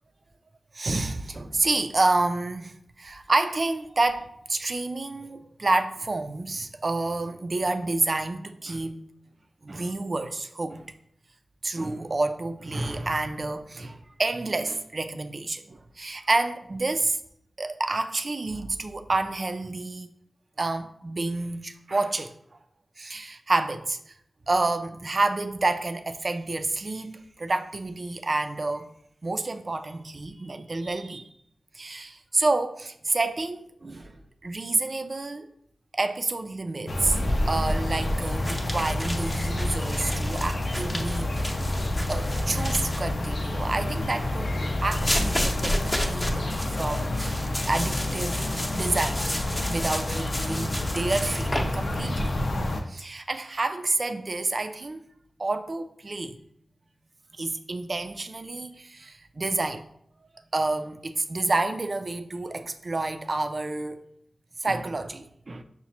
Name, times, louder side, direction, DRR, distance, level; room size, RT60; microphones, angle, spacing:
voice 1, 0.7-2.7 3.0-9.1 9.6-10.9 11.6-17.2 17.6-20.1 20.6-22.3 23.0-24.2 24.5-28.9 29.2-31.3 31.7-35.5 35.9-37.2 37.5-41.5 42.1-45.8 46.1-48.4 48.7-49.2 49.7-55.0 55.4-56.4 57.4-59.8 60.5-64.0 64.6-65.6, right 2 dB, 45° right, 0.3 m, -29 dB
sound 1, 36.9-52.8, left 1 dB, 60° left, 0.5 m, -29 dB
sound 2, 38.3-43.0 44.9-51.6, left 1 dB, 20° left, 0.6 m, -32 dB
5.8 x 2.0 x 2.8 m
cardioid pair, 60°, 0 cm